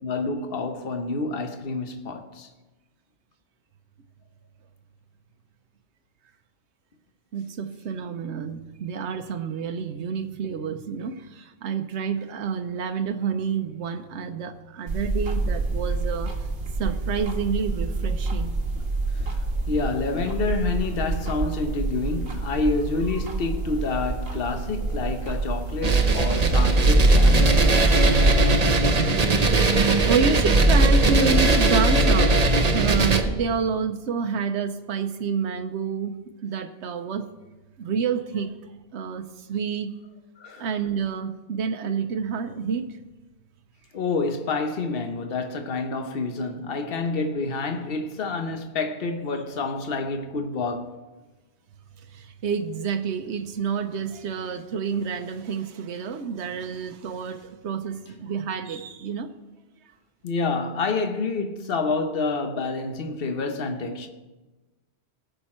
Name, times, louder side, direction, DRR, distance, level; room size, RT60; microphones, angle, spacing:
voice 1, 0.0-2.5 19.1-19.4 19.7-27.6 28.8-29.6 40.4-40.7 43.9-51.0 60.2-64.1, left 3 dB, 60° left, 1.2 m, -28 dB
voice 2, 7.3-16.3 16.8-18.9 30.0-37.3 37.8-38.6 38.9-40.0 40.6-43.0 52.0-59.3, right 6 dB, 85° right, 1.0 m, -29 dB
sound 1, 14.9-28.6, right 3 dB, 65° right, 1.6 m, -28 dB
sound 2, 25.8-33.2, right 2 dB, 40° right, 0.9 m, -18 dB
18.0 x 6.8 x 4.3 m
omnidirectional pair, 1.1 m